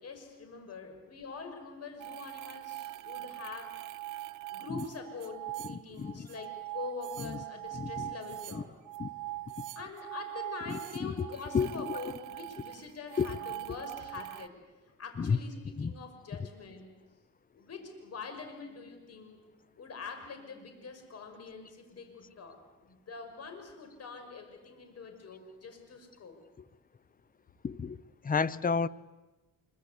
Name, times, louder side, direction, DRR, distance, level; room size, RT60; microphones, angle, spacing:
voice 1, 0.0-3.8 4.5-8.7 9.8-14.5 15.0-16.9 17.5-19.4 19.8-26.3, left 4 dB, 55° left, 5.8 m, -45 dB
sound 1, 2.0-14.5, right 16 dB, 80° right, 0.8 m, -42 dB
voice 2, 6.0-6.3 7.2-7.4 7.7-8.1 8.5-8.6 9.0-9.1 10.7-11.3 11.5-12.0 13.2-13.4 15.2-15.4 15.8-15.9 27.6-28.0 28.2-28.9, left 5 dB, 30° left, 0.8 m, -31 dB
25.5 x 24.0 x 8.4 m
cardioid pair, 90°, 30 cm